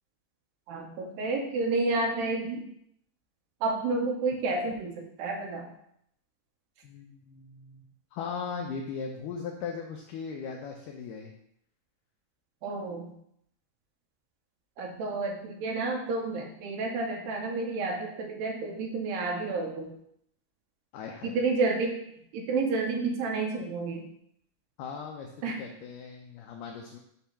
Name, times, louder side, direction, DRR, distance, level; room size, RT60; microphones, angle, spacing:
voice 1, 0.7-2.6 3.6-5.7 12.6-13.1 14.8-19.9 21.2-22.0 22.3-24.1 25.4-25.6, right 3 dB, 80° right, 0 dB, 2.4 m, -30 dB
voice 2, 6.8-7.8 8.1-11.3 20.9-21.4 24.8-27.0, left 5 dB, 85° left, 2 dB, 1.9 m, -38 dB
6.9 x 2.8 x 5.6 m, 0.73 s
omnidirectional pair, 4.4 m